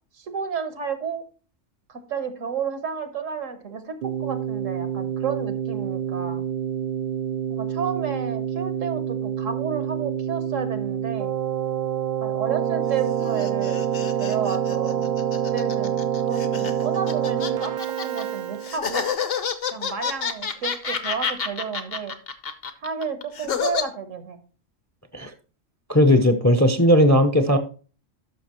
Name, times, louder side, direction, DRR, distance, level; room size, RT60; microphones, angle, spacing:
voice 1, 0.2-1.2 1.9-6.4 7.5-11.3 12.2-15.1 15.5-19.1 19.7-22.1 22.8-24.4, right 6 dB, 80° right, 9 dB, 1.5 m, -31 dB
Keyboard (musical), 4.0-19.1, right 9 dB, 65° right, 0.4 m, -27 dB
sound 1, 12.8-18.2 18.6-23.8, left 6 dB, 55° left, 1.0 m, -29 dB
voice 2, 25.9-27.6, equal, 20° left, 8 dB, 0.5 m, -17 dB
12.0 x 6.1 x 3.0 m, 0.37 s
omnidirectional pair, 1.3 m